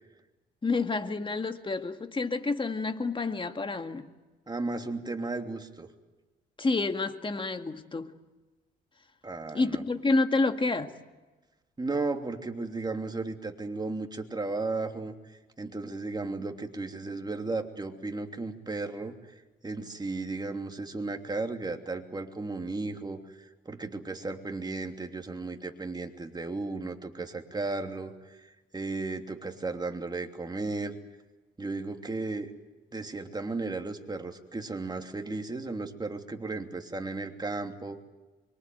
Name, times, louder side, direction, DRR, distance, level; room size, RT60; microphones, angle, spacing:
voice 1, 0.6-4.1 6.6-8.1 9.5-11.0, left 3 dB, 25° left, 2.0 m, -29 dB
voice 2, 4.5-5.9 9.2-9.8 11.8-19.1 19.6-31.0 31.6-32.5 32.9-38.0, right 3 dB, 20° right, 3.0 m, -35 dB
25.0 x 23.5 x 9.4 m
cardioid pair, 90°, 20 cm